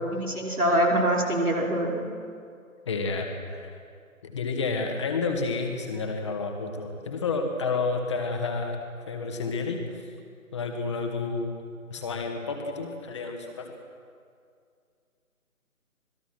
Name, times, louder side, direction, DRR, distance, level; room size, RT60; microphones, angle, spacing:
voice 1, 0.1-2.2, right 1 dB, 85° right, -2 dB, 5.6 m, -24 dB
voice 2, 2.9-3.8 4.2-8.8 9.1-10.0 10.5-11.5 11.9-13.7, left 4 dB, 20° left, 3 dB, 2.0 m, -30 dB
25.5 x 21.0 x 6.2 m, 2.3 s
figure-of-eight pair, 155°, 43 cm